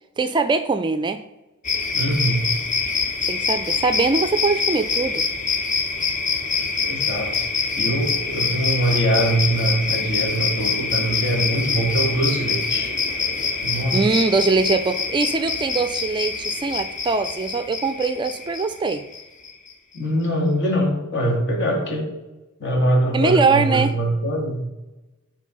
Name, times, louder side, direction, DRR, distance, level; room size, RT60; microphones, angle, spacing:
voice 1, 0.2-1.2 3.3-5.2 13.9-19.0 23.1-23.9, right 4 dB, 20° right, 10 dB, 0.4 m, -22 dB
sound 1, 1.6-19.7, left 5 dB, 40° left, 1.1 m, -25 dB
voice 2, 1.9-2.5 6.8-7.5 7.7-12.9 13.6-14.1 19.9-22.1 22.6-24.6, right 1 dB, 55° left, 0 dB, 2.2 m, -23 dB
11.0 x 3.8 x 5.4 m, 1.0 s
head